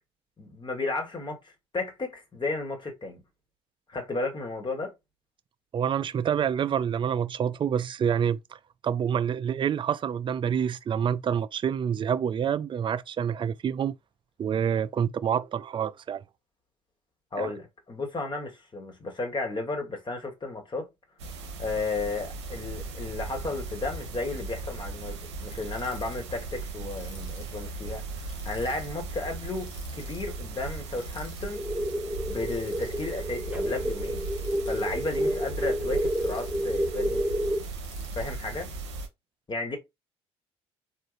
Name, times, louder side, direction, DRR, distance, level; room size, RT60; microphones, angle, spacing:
voice 1, 0.4-3.2 3.9-4.9 17.3-20.9 21.6-31.6 32.3-34.2 34.6-37.2 38.1-38.7 39.5-39.8, left 3 dB, 35° left, 1.4 m, -33 dB
voice 2, 5.7-13.9 14.4-16.2 17.4-17.5, right 8 dB, 35° right, 0.4 m, -27 dB
sound 1, 21.2-39.1, right 3 dB, 90° right, 0.6 m, -37 dB
Ratchet pawl, 25.5-26.1 26.9-27.6 28.3-28.9 29.6-30.3 31.0-31.5 32.5-33.1 34.2-34.9 35.9-36.7 37.6-38.4, left 4 dB, 85° left, 1.1 m, -52 dB
sound 2, 31.5-37.6, equal, 10° right, 0.7 m, -30 dB
3.7 x 2.5 x 2.5 m
hypercardioid pair, 60°, 14 cm